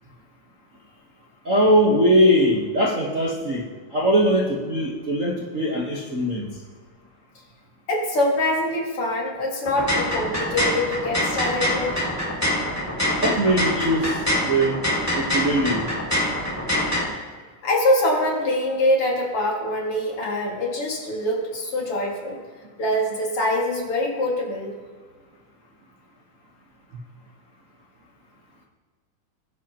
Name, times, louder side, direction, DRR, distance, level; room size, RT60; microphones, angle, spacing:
voice 1, 1.4-3.6 3.9-6.4 13.2-14.8 15.2-15.9, equal, 50° right, -5 dB, 0.9 m, -21 dB
voice 2, 7.9-12.0 17.6-22.4 22.8-24.7, left 1 dB, 50° left, -2 dB, 2.8 m, -24 dB
sound 1, 9.6-17.0, left 1 dB, 10° left, 1.1 m, -25 dB
20.5 x 10.0 x 3.0 m, 1.5 s
omnidirectional pair, 3.6 m